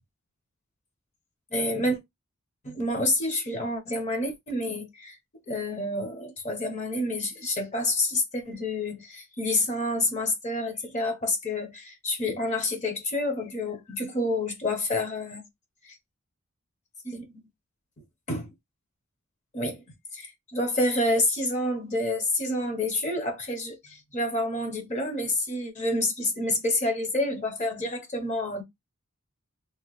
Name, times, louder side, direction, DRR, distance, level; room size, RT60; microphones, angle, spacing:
voice 1, 1.5-2.0 2.6-5.2 5.5-15.4 15.8-15.9 17.0-17.2 18.3-18.5 19.5-19.8 20.1-28.6, left 1 dB, 35° left, 0.8 m, -28 dB
2.9 x 2.2 x 2.9 m
head